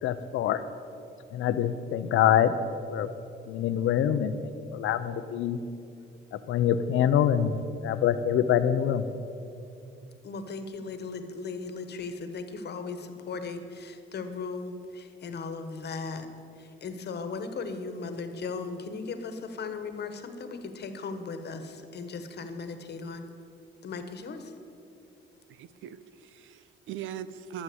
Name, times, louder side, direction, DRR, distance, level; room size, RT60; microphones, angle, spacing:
voice 1, 0.0-0.6 1.3-2.5 2.9-3.1 3.5-5.6 6.5-7.6 7.8-9.0, left 10 dB, 80° left, 12 dB, 0.7 m, -25 dB
voice 2, 10.2-16.3 16.6-23.2 23.8-24.5, left 4 dB, 55° left, 8 dB, 1.3 m, -37 dB
voice 3, 25.5-27.6, right 9 dB, 80° right, 14 dB, 0.6 m, -41 dB
12.5 x 7.3 x 7.9 m, 2.6 s
cardioid pair, 90°, 20 cm